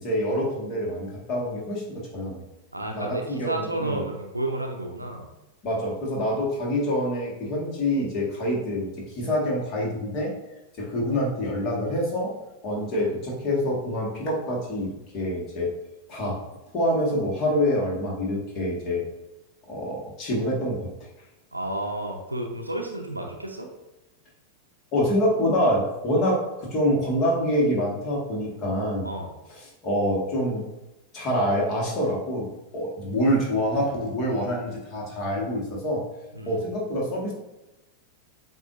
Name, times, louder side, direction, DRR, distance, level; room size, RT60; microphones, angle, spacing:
voice 1, 0.0-2.4 2.9-4.0 5.6-10.3 10.8-12.4 12.6-15.7 16.1-16.4 16.7-19.0 19.7-20.9 24.9-29.1 29.8-30.6 31.1-32.5 32.7-36.1 36.5-37.3, equal, 35° left, -3 dB, 1.5 m, -26 dB
voice 2, 2.7-5.3 21.5-23.7 29.0-29.3 33.4-33.9 36.3-36.6, right 1 dB, 85° right, 2 dB, 0.6 m, -31 dB
7.5 x 2.5 x 2.5 m, 1.0 s
figure-of-eight pair, 90°, 0 cm